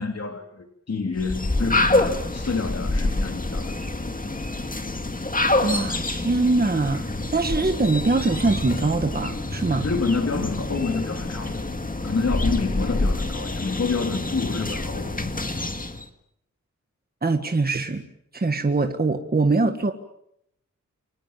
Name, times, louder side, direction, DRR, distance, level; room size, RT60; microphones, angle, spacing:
voice 1, 0.0-3.7 9.8-11.7 12.0-15.1, left 4 dB, 55° left, 4 dB, 3.2 m, -28 dB
sound 1, 1.2-16.0, left 2 dB, 25° left, 2.1 m, -27 dB
voice 2, 5.6-9.8 17.2-18.0 18.3-19.9, right 3 dB, 30° right, 6 dB, 1.7 m, -23 dB
29.0 x 25.0 x 7.4 m, 0.77 s
wide cardioid pair, 125°, 31 cm